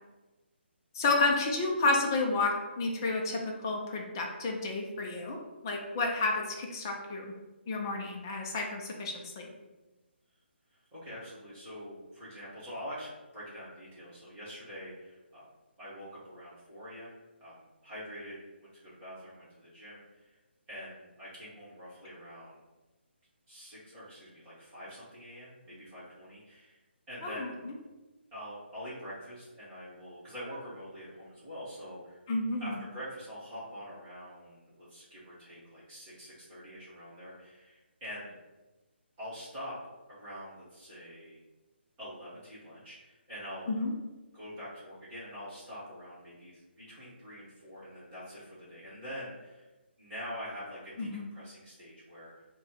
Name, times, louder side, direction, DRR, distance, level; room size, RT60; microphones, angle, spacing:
voice 1, 0.9-5.4 5.6-7.3 7.7-9.5 27.2-27.7 32.3-32.8 43.7-43.9 51.0-51.3, left 3 dB, 20° left, 1 dB, 0.4 m, -31 dB
voice 2, 10.7-15.4 15.8-20.4 20.7-22.6 23.5-26.8 27.1-27.7 28.3-32.2 32.6-38.3 39.2-39.8 40.1-41.4 42.0-43.8 44.3-49.7 50.0-52.5, equal, 15° right, -10 dB, 1.2 m, -45 dB
4.2 x 2.2 x 4.4 m, 1.1 s
hypercardioid pair, 170°, 6 cm